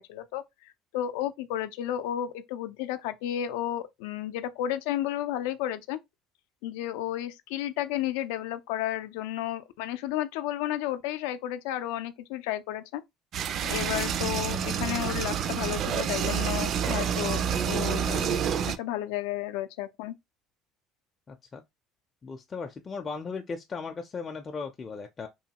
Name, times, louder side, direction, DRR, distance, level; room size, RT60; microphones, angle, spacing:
voice 1, 0.0-6.0 6.6-13.0 13.6-20.1, left 12 dB, 90° left, 0.4 m, -32 dB
sound 1, 13.3-18.8, right 8 dB, 50° right, 0.4 m, -28 dB
voice 2, 21.3-21.6 22.2-25.3, left 4 dB, 30° left, 0.4 m, -37 dB
3.0 x 2.2 x 2.8 m
cardioid pair, 110°, 0 cm